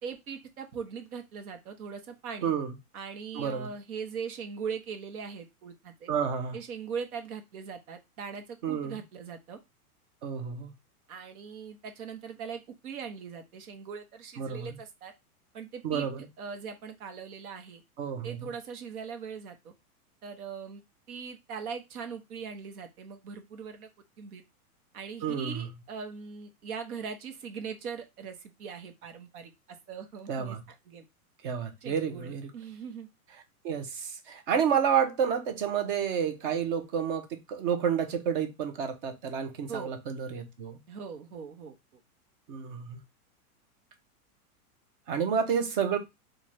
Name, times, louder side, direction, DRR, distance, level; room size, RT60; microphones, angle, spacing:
voice 1, 0.0-2.5 2.9-6.1 6.5-9.6 11.1-15.1 15.5-16.1 16.4-17.8 18.2-19.7 20.2-20.8 21.1-23.9 24.2-24.4 24.9-30.6 30.9-31.0 31.8-33.1 39.7-39.9 40.9-41.7, right 6 dB, 75° right, 1.1 m, -40 dB
voice 2, 2.4-2.7 3.3-3.7 6.1-6.6 8.6-9.0 10.2-10.7 14.4-14.8 15.8-16.3 18.0-18.5 25.2-25.7 30.3-30.6 31.4-32.5 33.6-40.8 42.5-43.0 45.1-46.0, right 7 dB, 35° right, 0.7 m, -30 dB
4.0 x 2.5 x 3.1 m
supercardioid pair, 155°, 45 cm